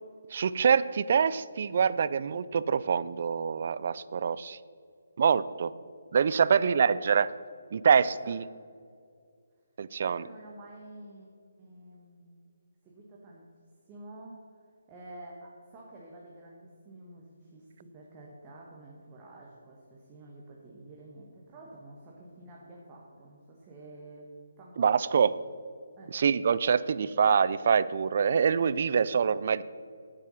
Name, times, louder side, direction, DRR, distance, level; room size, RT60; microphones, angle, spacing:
voice 1, 0.3-4.6 5.2-5.7 6.1-7.3 7.7-8.4 9.8-10.2 24.8-25.3 26.1-29.6, right 6 dB, 50° right, 17 dB, 0.3 m, -25 dB
voice 2, 6.4-6.8 7.9-8.4 10.0-11.3 11.6-12.4 12.8-13.5 13.8-14.4 14.9-24.3 24.6-25.3 26.0-26.2, right 2 dB, 20° right, -3 dB, 1.4 m, -49 dB
9.4 x 7.7 x 5.6 m, 2.3 s
figure-of-eight pair, 145°, 0 cm